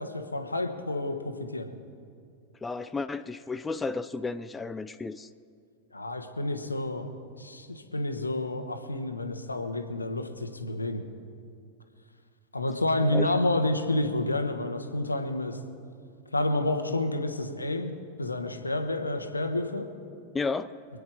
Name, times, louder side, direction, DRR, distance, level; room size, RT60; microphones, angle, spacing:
voice 1, 0.0-1.7 5.9-7.1 7.3-11.0 12.5-15.6 16.3-17.9 18.2-19.9, left 2 dB, 80° left, 6 dB, 1.2 m, -29 dB
voice 2, 2.6-5.3 13.1-13.3 20.3-20.7, left 4 dB, 15° left, 12 dB, 0.4 m, -32 dB
26.0 x 9.4 x 3.7 m, 2.3 s
figure-of-eight pair, 90°, 0 cm